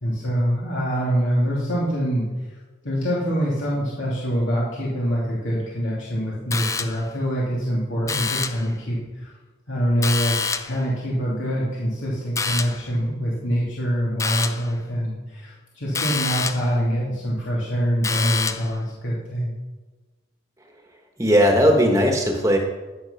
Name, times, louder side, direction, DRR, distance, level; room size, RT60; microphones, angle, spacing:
voice 1, 0.0-2.3 2.8-9.3 9.7-19.5, equal, 85° left, -7 dB, 2.8 m, -25 dB
sound 1, 6.5-7.2 8.1-8.7 10.0-10.8 12.4-12.9 14.2-14.7 15.9-16.7 18.0-18.8, left 4 dB, 15° left, 0.4 m, -27 dB
voice 2, 21.2-22.6, equal, 15° right, 2 dB, 1.2 m, -17 dB
14.5 x 6.1 x 5.8 m, 1.2 s
head